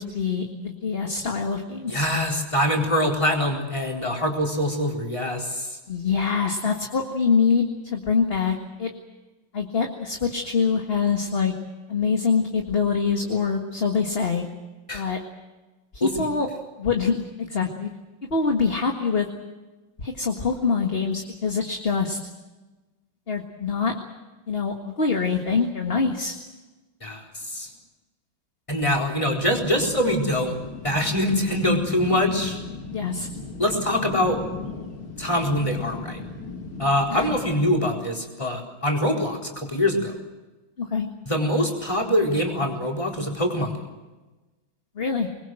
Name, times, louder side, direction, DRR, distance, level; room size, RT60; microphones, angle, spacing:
voice 1, 0.0-2.1 5.9-8.9 9.5-11.5 11.9-14.5 14.9-15.2 15.9-16.5 16.8-17.9 18.3-19.3 20.0-22.2 23.3-23.9 24.5-26.4 32.9-33.3 37.1-37.3 40.8-41.1 45.0-45.3, left 5 dB, 30° left, 3 dB, 1.8 m, -24 dB
voice 2, 1.9-5.8 14.9-15.1 16.0-16.3 27.0-27.7 28.7-30.6 30.8-32.6 33.6-34.4 35.2-36.2 36.8-40.2 41.3-43.8, left 1 dB, 15° left, 2 dB, 4.2 m, -24 dB
sound 1, 29.4-37.5, left 4 dB, 90° left, 3.1 m, -37 dB
25.0 x 21.0 x 7.7 m, 1.2 s
omnidirectional pair, 2.2 m